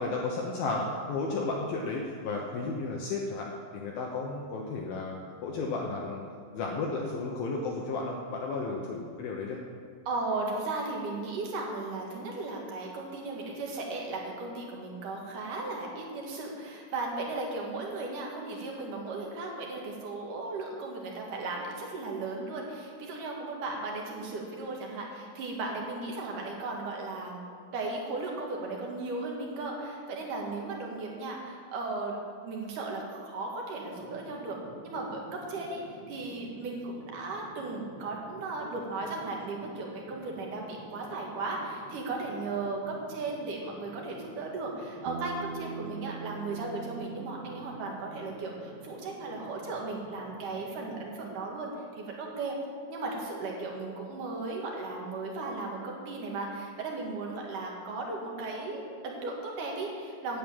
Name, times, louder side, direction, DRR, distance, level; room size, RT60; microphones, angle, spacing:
voice 1, 0.0-6.2 6.5-9.6, left 3 dB, 75° left, -1 dB, 2.2 m, -33 dB
voice 2, 10.1-27.4 27.7-32.2 32.4-34.6 34.8-52.6 52.9-60.4, right 3 dB, 55° right, -1 dB, 2.8 m, -36 dB
sound 1, 33.9-51.2, right 3 dB, 70° right, 3.4 m, -51 dB
Bass guitar, 45.1-49.3, right 4 dB, 85° right, 3.4 m, -43 dB
11.0 x 8.5 x 8.9 m, 2.1 s
omnidirectional pair, 5.7 m